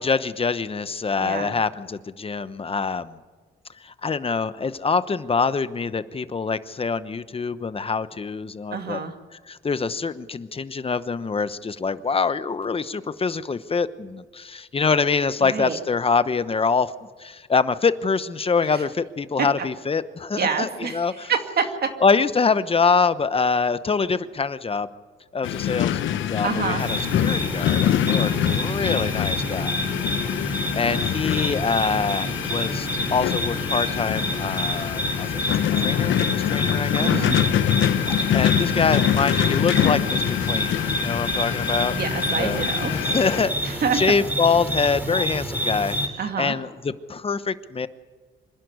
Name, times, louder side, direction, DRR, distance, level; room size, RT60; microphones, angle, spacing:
voice 1, 0.0-3.2 3.8-9.0 9.5-16.9 17.2-21.3 22.0-24.9 25.3-26.0 26.3-30.1 30.4-35.4 35.8-37.3 38.3-41.9 42.4-47.9, left 5 dB, 30° left, 13 dB, 1.0 m, -25 dB
voice 2, 1.2-1.5 8.7-9.1 15.4-15.8 18.7-18.8 20.4-21.9 26.4-26.8 37.0-37.4 42.0-42.9 43.3-43.4 43.8-44.0 46.2-46.5, right 6 dB, 55° right, 5 dB, 2.3 m, -27 dB
sound 1, 25.4-43.4, left 11 dB, 75° left, 0.9 m, -25 dB
sound 2, 26.8-46.1, equal, 10° right, 4.0 m, -29 dB
26.0 x 11.5 x 9.5 m, 1.5 s
cardioid pair, 90°, 20 cm